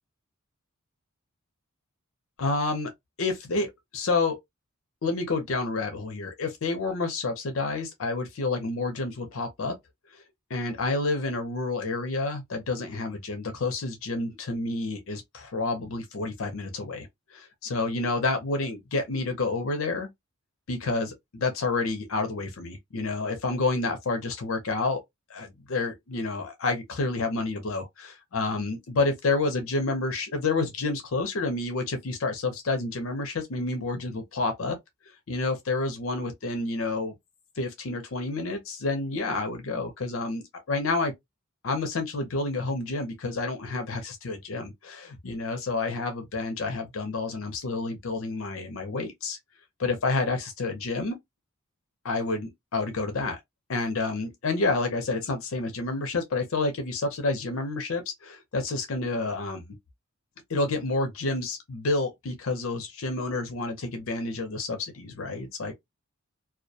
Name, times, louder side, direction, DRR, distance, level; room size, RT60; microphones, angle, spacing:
voice 1, 2.4-2.9 3.2-4.4 5.0-9.7 10.1-10.2 10.5-20.1 20.7-25.0 25.3-34.8 35.3-37.1 37.6-41.1 41.6-49.4 49.8-51.2 52.0-53.4 53.7-59.6 60.5-65.7, left 3 dB, 65° left, 0.6 m, -29 dB
2.2 x 2.1 x 2.6 m
head